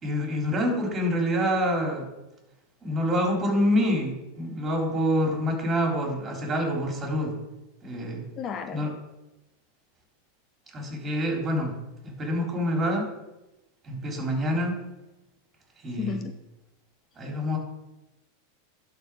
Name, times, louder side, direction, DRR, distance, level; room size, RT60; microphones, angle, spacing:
voice 1, 0.0-2.1 2.8-7.4 7.8-8.2 8.7-8.9 10.7-11.8 12.0-13.1 13.8-14.8 15.8-16.2 17.2-17.6, equal, 25° right, 0 dB, 3.3 m, -26 dB
voice 2, 8.4-8.9 16.0-16.3, left 7 dB, 35° left, 7 dB, 0.7 m, -32 dB
11.5 x 4.5 x 4.8 m, 0.97 s
hypercardioid pair, 100°, 0 cm